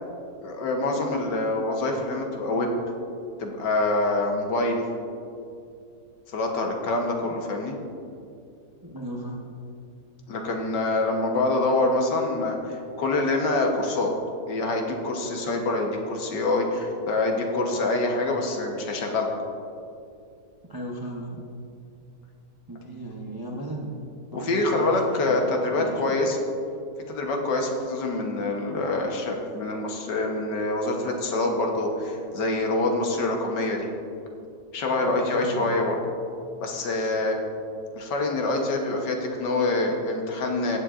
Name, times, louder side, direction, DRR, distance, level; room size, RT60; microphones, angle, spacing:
voice 1, 0.4-2.7 3.4-4.9 6.3-7.8 10.3-14.1 14.5-19.3 24.3-26.4 27.1-33.9 34.7-36.0 36.6-37.4 37.9-40.8, left 2 dB, 85° left, 1 dB, 1.7 m, -25 dB
voice 2, 8.8-9.4 20.7-21.4 22.7-24.1 24.3-26.2 35.0-35.7 37.0-37.1, right 1 dB, 30° right, -1 dB, 0.4 m, -36 dB
16.0 x 7.7 x 2.5 m, 2.5 s
omnidirectional pair, 1.8 m